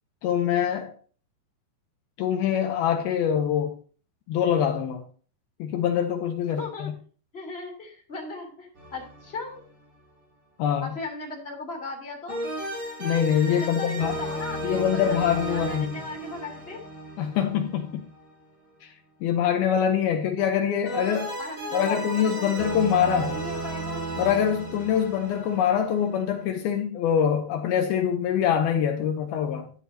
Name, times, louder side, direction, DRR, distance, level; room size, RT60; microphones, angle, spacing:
voice 1, 0.2-0.9 2.2-3.7 4.3-5.0 5.6-6.9 10.6-10.9 13.0-14.2 14.6-15.9 17.2-18.1 18.8-18.9 19.2-21.3 21.7-23.3 24.2-29.7, left 8 dB, 85° left, 2.2 m, -24 dB
voice 2, 6.6-6.9 7.3-9.6 10.8-12.4 13.5-15.2 15.5-16.8 21.4-24.0, left 3 dB, 15° left, 2.4 m, -37 dB
sound 1, 8.8-9.7 12.3-18.3 20.9-26.5, right 1 dB, 35° right, 6.4 m, -35 dB
11.5 x 11.5 x 2.8 m
omnidirectional pair, 5.4 m